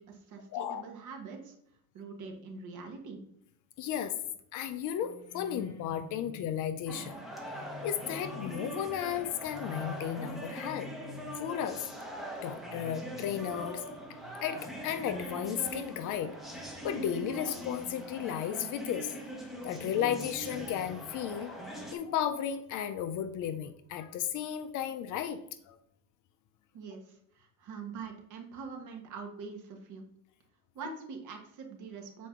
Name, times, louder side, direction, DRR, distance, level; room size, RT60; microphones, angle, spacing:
voice 1, 0.0-1.5 1.9-3.2 26.7-30.0 30.7-32.3, right 5 dB, 45° right, 3 dB, 1.4 m, -44 dB
voice 2, 0.5-0.8 3.8-4.2 4.5-7.2 7.8-10.9 11.4-11.8 12.4-13.8 14.1-16.4 16.8-19.1 19.5-25.4 25.7-25.8, left 9 dB, 45° left, 10 dB, 0.6 m, -34 dB
sound 1, 5.0-16.6 17.3-18.6 19.6-21.2, left 3 dB, 20° left, 1.3 m, -49 dB
sound 2, 6.9-22.0, equal, ahead, 1.1 m, -42 dB
7.3 x 4.6 x 3.7 m, 0.72 s
cardioid pair, 140°, 42 cm